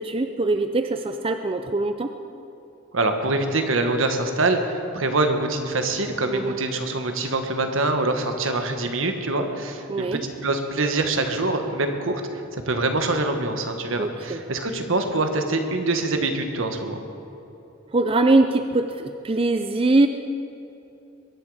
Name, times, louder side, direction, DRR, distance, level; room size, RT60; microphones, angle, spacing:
voice 1, 0.0-2.1 6.3-6.6 9.9-10.2 14.0-14.4 17.9-20.1, right 2 dB, 25° right, 7 dB, 0.5 m, -22 dB
voice 2, 2.9-12.2 12.5-17.0, right 2 dB, 75° right, 6 dB, 1.5 m, -24 dB
22.5 x 11.0 x 4.9 m, 2.9 s
head